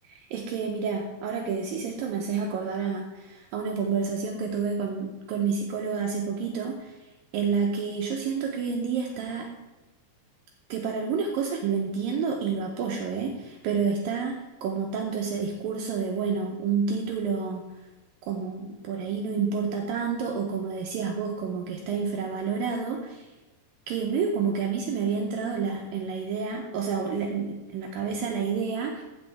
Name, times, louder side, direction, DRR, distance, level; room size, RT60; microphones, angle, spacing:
voice 1, 0.1-6.9 7.3-9.5 10.7-14.4 14.6-17.7 18.2-23.3 23.9-29.0, right 5 dB, 75° right, 1 dB, 2.4 m, -29 dB
14.5 x 6.3 x 3.4 m, 1.1 s
omnidirectional pair, 4.3 m